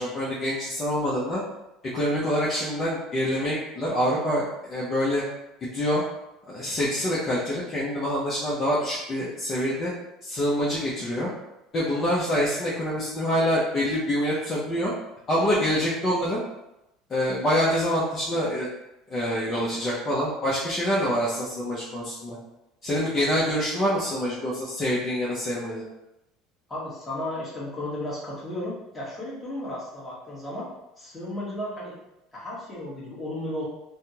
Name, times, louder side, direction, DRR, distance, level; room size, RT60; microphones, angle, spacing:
voice 1, 0.0-1.4 1.9-5.2 5.6-6.0 6.5-9.9 10.2-11.3 11.7-14.9 15.3-16.4 17.1-18.7 19.1-22.4 22.8-25.8, equal, 35° left, -7 dB, 0.7 m, -26 dB
voice 2, 26.7-30.7 31.0-32.0 32.3-33.6, left 1 dB, 20° left, -7 dB, 1.3 m, -34 dB
3.4 x 2.2 x 2.8 m, 0.91 s
supercardioid pair, 110°, 0 cm